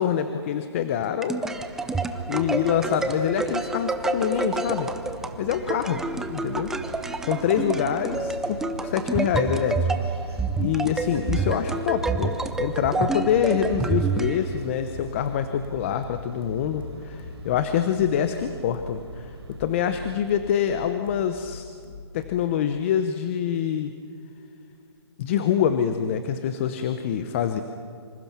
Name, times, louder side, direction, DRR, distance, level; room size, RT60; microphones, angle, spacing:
voice 1, 0.0-1.4 2.3-4.9 5.4-6.0 6.3-6.7 7.2-9.9 10.3-21.7 22.1-23.9 25.2-27.6, left 9 dB, 30° left, 9 dB, 0.8 m, -25 dB
sound 1, 0.9-14.8, right 3 dB, 5° right, 0.5 m, -28 dB
sound 2, 1.5-20.2, right 4 dB, 70° right, 3.9 m, -42 dB
sound 3, 10.2-22.6, left 5 dB, 55° left, 2.3 m, -43 dB
26.0 x 26.0 x 6.0 m, 2.4 s
hypercardioid pair, 160°, 14 cm